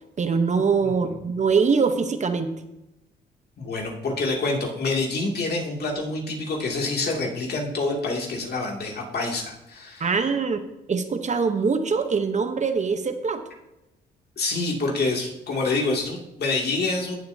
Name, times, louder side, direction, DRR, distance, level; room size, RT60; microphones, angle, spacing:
voice 1, 0.2-2.5 10.0-10.6 10.9-13.4, right 5 dB, 35° right, 7 dB, 1.0 m, -23 dB
voice 2, 0.8-1.1 3.6-10.1 14.4-17.2, left 3 dB, 55° left, 0 dB, 2.6 m, -27 dB
17.0 x 7.7 x 2.8 m, 0.94 s
cardioid pair, 90°, 20 cm